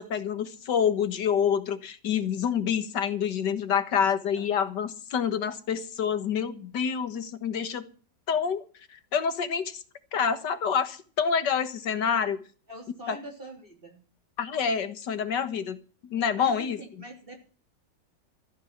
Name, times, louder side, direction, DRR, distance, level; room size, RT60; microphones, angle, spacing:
voice 1, 0.0-7.8 8.3-8.6 8.9-9.8 10.1-12.4 13.1-13.2 14.4-15.8 16.0-16.8, left 7 dB, 70° left, 11 dB, 2.0 m, -27 dB
voice 2, 12.7-14.0 16.3-17.4, right 1 dB, 30° right, 1 dB, 3.5 m, -44 dB
14.5 x 9.3 x 7.4 m, 0.38 s
omnidirectional pair, 1.9 m